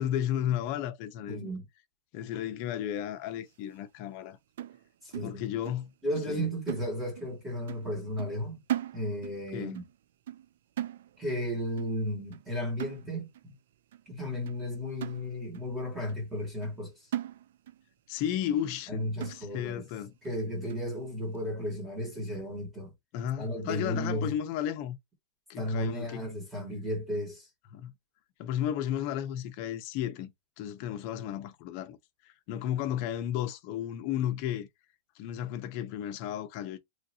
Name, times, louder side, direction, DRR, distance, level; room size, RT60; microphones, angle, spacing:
voice 1, 0.0-1.5 2.1-4.4 5.2-5.9 6.3-6.5 9.5-9.8 18.1-20.1 23.1-25.0 25.5-26.2 27.7-27.9 28.4-32.0 32.2-34.7 35.2-36.8, left 10 dB, 40° left, 0.6 m, -33 dB
voice 2, 1.3-1.6 5.0-5.4 6.0-8.6 8.9-9.8 11.2-13.5 14.1-17.1 18.9-19.8 20.2-22.9 23.4-24.3 25.6-27.5, equal, 10° right, 1.4 m, -34 dB
sound 1, 4.6-5.9 6.2-6.4 6.7-7.4 7.7-7.9 8.2-9.4 9.7-10.0 10.3-10.5 10.8-11.4 11.8-12.0 12.3-12.5 12.8-13.4 13.9-14.0 14.5-14.6 15.0-15.7 16.1-16.2 16.6-16.8 17.1-17.8 18.2-18.3 18.7-18.8 19.2-19.7 20.2-20.3 20.7-20.9, right 12 dB, 70° right, 0.3 m, -38 dB
3.1 x 2.6 x 2.7 m
supercardioid pair, 160°, 0 cm